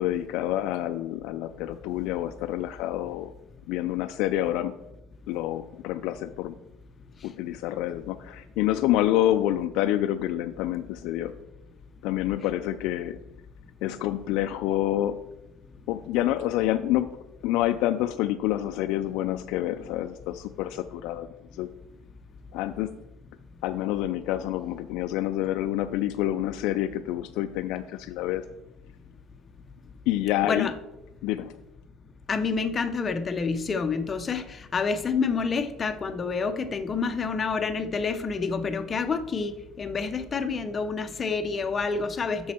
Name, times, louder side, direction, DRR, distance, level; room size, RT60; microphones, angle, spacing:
voice 1, 0.0-3.3 3.7-4.7 5.3-6.5 7.2-11.3 12.0-13.2 13.8-15.2 15.9-17.1 17.4-21.3 21.5-21.7 22.5-23.0 23.6-28.4 30.1-30.7 31.2-31.5, left 13 dB, 70° left, 7 dB, 0.3 m, -27 dB
voice 2, 32.3-34.4 34.7-42.5, left 5 dB, 25° left, 9 dB, 0.6 m, -28 dB
7.4 x 6.1 x 4.3 m, 0.91 s
cardioid pair, 165°, 0 cm